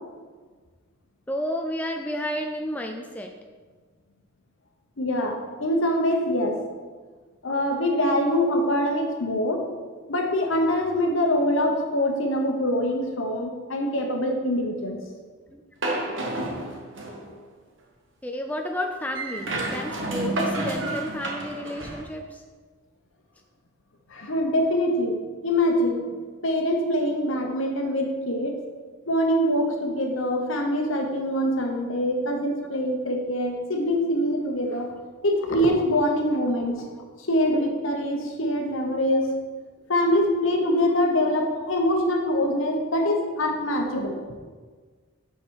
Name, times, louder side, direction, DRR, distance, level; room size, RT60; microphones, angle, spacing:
voice 1, 1.3-3.3 5.5-5.6 15.5-15.6 18.2-22.4 39.3-39.4 40.3-40.4 41.6-41.7, left 1 dB, 5° left, 2 dB, 0.3 m, -32 dB
voice 2, 5.0-6.6 7.4-9.6 10.1-15.0 24.1-26.2 26.4-28.6 29.1-34.9 35.2-36.9 37.3-39.3 39.9-44.2, left 1 dB, 70° left, 3 dB, 1.1 m, -24 dB
sound 1, 15.8-17.3 19.2-22.0, right 2 dB, 60° right, 1.2 m, -30 dB
6.0 x 5.8 x 4.7 m, 1.5 s
head